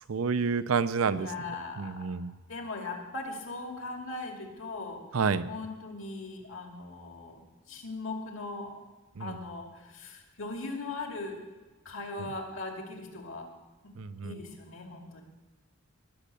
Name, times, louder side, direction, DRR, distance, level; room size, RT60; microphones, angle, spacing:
voice 1, 0.1-1.3 1.8-2.3 5.1-5.5 9.2-9.4 12.2-12.3 14.0-14.4, right 5 dB, 90° right, 14 dB, 0.6 m, -29 dB
voice 2, 1.1-2.2 2.5-5.0 5.5-7.4 7.7-8.8 9.2-11.4 11.8-13.5 14.2-15.2, left 3 dB, 65° left, 2 dB, 2.3 m, -39 dB
18.5 x 6.3 x 6.8 m, 1.2 s
head